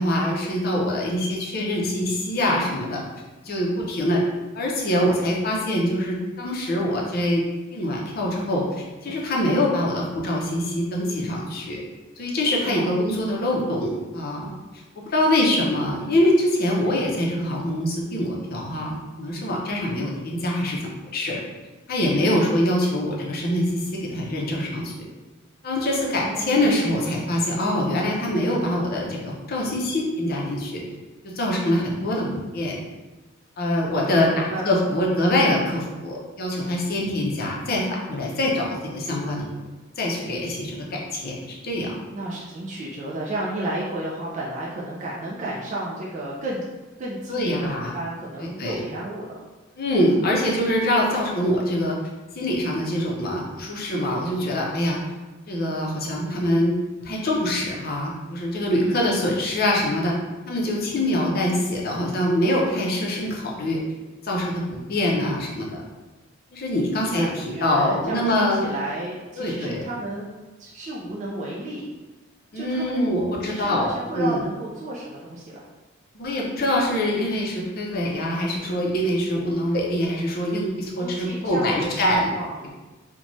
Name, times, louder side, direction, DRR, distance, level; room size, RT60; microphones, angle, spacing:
voice 1, 0.0-3.0 3.4-4.2 4.5-7.4 7.7-11.8 12.2-14.5 15.1-20.8 21.1-21.4 21.9-24.9 25.6-30.8 31.2-32.8 33.6-39.5 40.0-41.9 47.3-47.9 48.4-48.8 49.8-52.0 52.3-55.0 55.5-56.7 57.0-60.1 60.5-63.8 64.2-65.8 66.5-68.7 69.4-69.8 72.5-74.4 76.1-82.2, left 1 dB, 45° left, -2 dB, 0.5 m, -24 dB
voice 2, 26.1-26.8 33.9-34.6 42.1-46.6 47.0-49.3 58.7-59.0 67.1-70.3 70.6-71.8 72.5-73.0 73.4-75.7 81.0-82.0 82.3-82.6, right 1 dB, 35° right, -5 dB, 0.3 m, -32 dB
3.0 x 2.1 x 2.6 m, 1.2 s
head